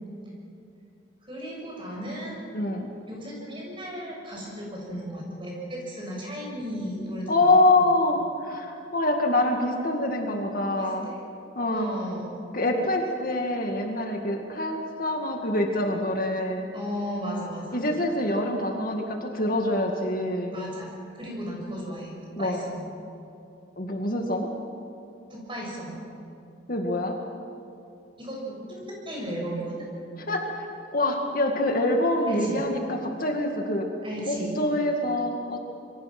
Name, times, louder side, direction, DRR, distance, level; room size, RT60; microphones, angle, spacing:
voice 1, 1.3-2.4 3.1-7.5 7.7-7.9 10.7-11.2 11.7-12.4 16.7-17.8 20.5-22.1 22.4-22.9 25.3-26.0 28.2-29.9 32.3-32.6 34.0-34.5, equal, 25° right, -2 dB, 6.8 m, -35 dB
voice 2, 2.5-2.9 7.3-11.1 11.6-11.9 12.5-16.7 17.7-20.5 22.4-22.6 23.8-24.5 26.7-27.2 30.3-30.7 30.9-33.9 34.3-35.6, left 1 dB, 50° left, 2 dB, 2.1 m, -25 dB
27.0 x 23.5 x 6.1 m, 2.7 s
head